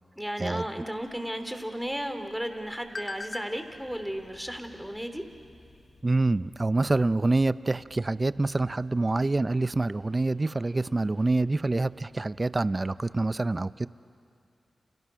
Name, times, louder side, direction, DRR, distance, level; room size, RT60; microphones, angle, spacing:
voice 1, 0.2-5.2, equal, 5° right, 7 dB, 2.9 m, -34 dB
sound 1, 0.9-6.0, left 2 dB, 40° left, 1.3 m, -46 dB
sound 2, 3.5-13.3, left 2 dB, 85° left, 7.2 m, -58 dB
voice 2, 6.0-13.9, right 2 dB, 35° right, 16 dB, 0.6 m, -26 dB
29.0 x 28.5 x 6.3 m, 2.5 s
cardioid pair, 45°, 0 cm